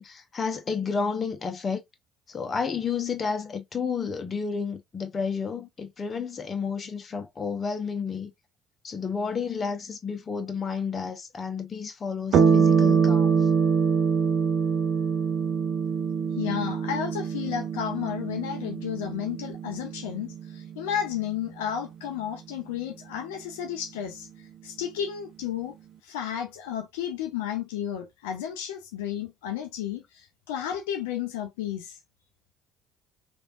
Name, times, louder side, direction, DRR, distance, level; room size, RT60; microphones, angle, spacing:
voice 1, 0.0-1.8 2.3-8.3 8.8-13.5, left 5 dB, 35° left, 0.8 m, -31 dB
sound 1, 12.3-21.2, right 6 dB, 55° right, 0.6 m, -24 dB
voice 2, 16.3-25.8 26.0-32.0, left 9 dB, 75° left, 0.4 m, -32 dB
3.2 x 2.6 x 2.2 m
figure-of-eight pair, 55°, 0 cm